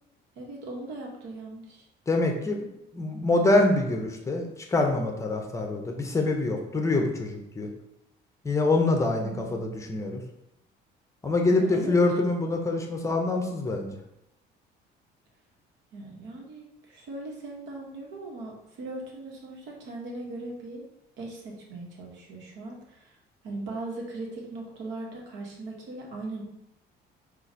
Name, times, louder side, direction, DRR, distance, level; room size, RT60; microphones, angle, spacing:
voice 1, 0.4-1.8 9.1-9.6 11.5-11.9 15.9-20.8 21.2-23.1 23.4-26.4, right 2 dB, 80° right, -1 dB, 1.2 m, -39 dB
voice 2, 2.1-2.7 2.9-7.7 8.4-10.2 11.2-13.9, left 2 dB, 15° left, 3 dB, 0.6 m, -25 dB
4.8 x 2.5 x 4.1 m, 0.83 s
cardioid pair, 145°, 19 cm